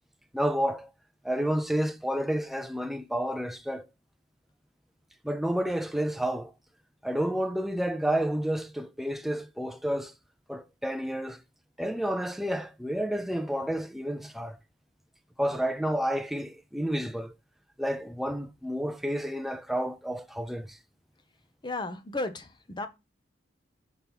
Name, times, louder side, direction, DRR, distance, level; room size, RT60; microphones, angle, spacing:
voice 1, 0.3-0.9 1.2-3.9 5.2-6.5 7.0-10.1 10.5-11.4 11.8-14.6 15.4-17.3 17.8-20.8, equal, ahead, 0.5 m, -30 dB
voice 2, 21.6-22.9, left 2 dB, 25° left, 0.8 m, -34 dB
6.0 x 4.2 x 5.4 m
head